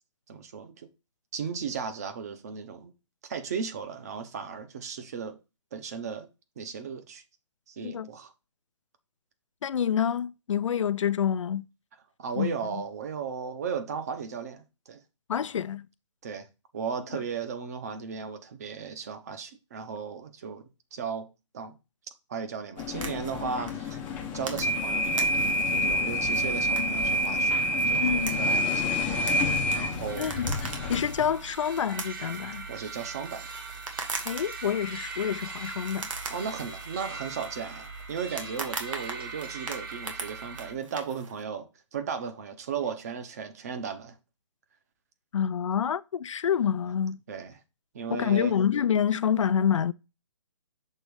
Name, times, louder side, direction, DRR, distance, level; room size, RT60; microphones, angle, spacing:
voice 1, 0.3-0.9 1.3-2.9 3.2-5.4 5.7-6.3 6.6-7.2 7.7-8.3 12.2-15.0 16.2-16.5 16.7-21.3 21.5-21.8 22.3-24.0 24.3-25.3 25.7-27.5 27.9-29.2 29.7-30.4 32.7-33.5 36.3-44.2 47.3-47.6 47.9-48.5, right 6 dB, 30° right, 0.8 m, -36 dB
voice 2, 9.6-11.6 12.4-12.8 15.3-15.9 28.0-28.4 29.7-29.9 30.2-30.5 30.9-32.7 34.2-36.1 45.3-47.2 48.1-49.9, left 8 dB, 75° left, 0.4 m, -27 dB
sound 1, 22.8-31.4, equal, 10° left, 0.5 m, -27 dB
sound 2, 22.8-41.4, right 4 dB, 85° right, 1.6 m, -42 dB
sound 3, 30.1-40.7, right 4 dB, 45° right, 1.3 m, -41 dB
6.6 x 3.1 x 4.8 m
hypercardioid pair, 165°, 16 cm